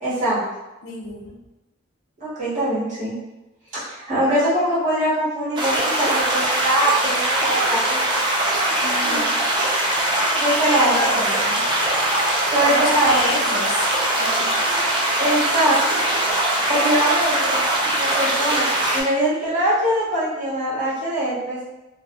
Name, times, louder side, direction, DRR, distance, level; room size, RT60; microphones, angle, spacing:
voice 1, 0.0-0.4 2.2-3.2 3.7-8.0 9.0-9.2 10.3-10.9 12.5-13.1 15.2-15.7 16.7-17.7 18.0-18.7 18.9-21.6, right 1 dB, 40° right, -10 dB, 1.2 m, -22 dB
voice 2, 0.8-1.4 8.8-9.3 10.6-11.6 12.7-14.8, left 2 dB, 70° left, -3 dB, 0.5 m, -29 dB
sound 1, 5.6-19.0, right 1 dB, 25° right, 0.4 m, -21 dB
2.3 x 2.3 x 2.7 m, 1.0 s
head